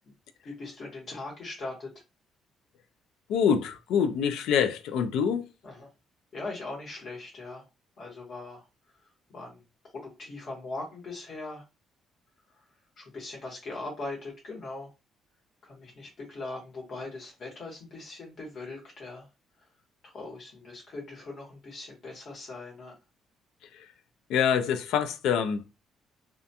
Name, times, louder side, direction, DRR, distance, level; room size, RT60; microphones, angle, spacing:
voice 1, 0.4-1.9 5.6-5.9 6.3-7.6 8.0-8.6 9.3-9.6 10.0-11.6 13.0-14.9 15.6-19.3 20.1-22.9, left 2 dB, 45° left, 1.1 m, -40 dB
voice 2, 3.3-5.4 23.7-23.9 24.3-25.6, left 7 dB, 85° left, 0.3 m, -25 dB
2.3 x 2.2 x 2.7 m
cardioid pair, 150°, 0 cm